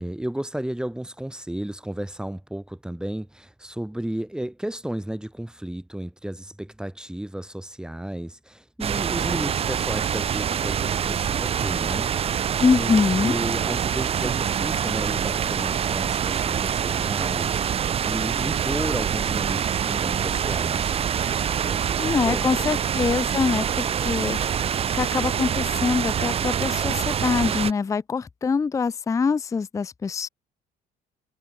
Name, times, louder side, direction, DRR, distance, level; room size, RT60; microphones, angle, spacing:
voice 1, 0.0-12.1 12.8-20.9 21.6-22.7, right 1 dB, 5° right, 4.3 m, -33 dB
sound 1, 8.8-27.7, right 8 dB, 35° right, 0.5 m, -25 dB
voice 2, 12.6-13.4 22.0-30.3, left 5 dB, 20° left, 0.4 m, -24 dB
cardioid pair, 110°, 17 cm